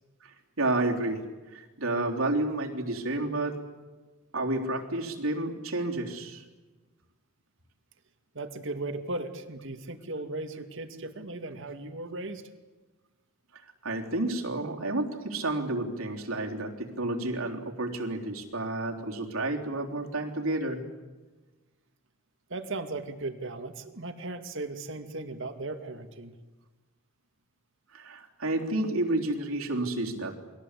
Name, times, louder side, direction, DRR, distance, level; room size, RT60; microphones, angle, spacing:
voice 1, 0.2-1.3 1.5-3.6 4.3-6.4 13.8-20.8 27.9-30.4, right 2 dB, 80° right, 1 dB, 3.7 m, -30 dB
voice 2, 8.3-12.4 22.5-26.3, right 2 dB, 65° right, 7 dB, 2.2 m, -37 dB
29.0 x 21.5 x 8.4 m, 1.3 s
head